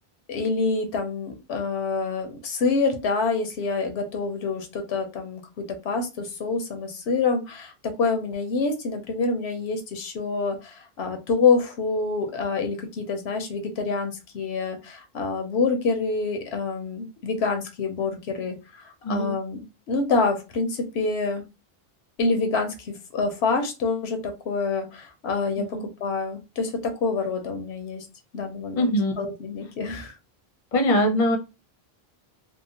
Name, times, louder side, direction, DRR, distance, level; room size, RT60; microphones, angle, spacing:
voice 1, 0.3-7.7 8.0-21.4 22.2-28.1 28.3-30.2, left 4 dB, 90° left, 5 dB, 0.9 m, -27 dB
voice 2, 19.0-19.4 25.6-25.8 28.7-29.1 30.7-31.4, equal, 40° left, 3 dB, 0.6 m, -22 dB
2.8 x 2.1 x 2.7 m, 0.27 s
omnidirectional pair, 1.1 m